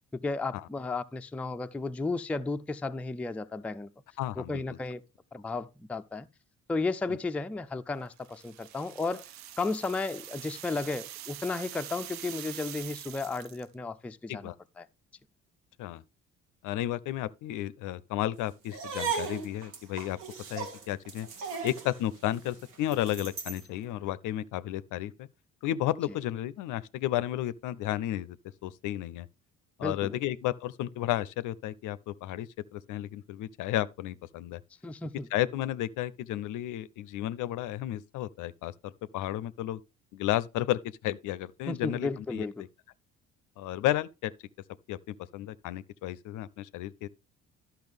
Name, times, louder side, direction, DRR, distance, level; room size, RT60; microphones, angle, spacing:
voice 1, 0.2-3.9 4.4-5.0 5.3-6.3 6.7-9.2 9.6-14.5 14.8-14.9 29.8-30.2 34.8-35.3 41.7-42.6, left 3 dB, 5° left, 0.4 m, -33 dB
voice 2, 4.2-4.8 14.3-14.6 15.8-16.0 16.6-20.2 20.5-21.3 21.6-25.3 25.6-28.4 28.6-29.3 29.8-34.6 35.3-39.8 40.1-42.7 43.6-44.3 44.9-47.1, left 13 dB, 55° left, 0.5 m, -33 dB
sound 1, 8.2-13.7, right 12 dB, 50° right, 0.5 m, -44 dB
sound 2, 18.7-23.7, right 6 dB, 65° right, 1.5 m, -37 dB
12.0 x 5.7 x 3.5 m
hypercardioid pair, 50°, 37 cm